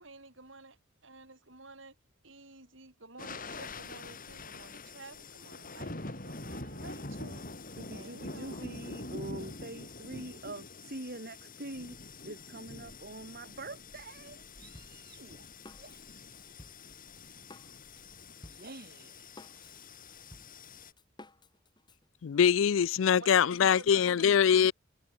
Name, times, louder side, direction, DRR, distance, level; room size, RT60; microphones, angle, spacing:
voice 1, 0.0-2.0 2.2-7.5 7.9-8.7 23.2-24.4, right 3 dB, 70° right, 6.6 m, -52 dB
sound 1, 3.2-20.9, left 2 dB, 45° left, 4.7 m, -45 dB
voice 2, 7.8-15.5 15.8-16.0 18.6-19.1, right 2 dB, 50° right, 3.1 m, -45 dB
Drum kit, 14.7-22.0, left 1 dB, 20° left, 6.0 m, -55 dB
voice 3, 22.2-24.7, left 7 dB, 75° left, 0.4 m, -23 dB
head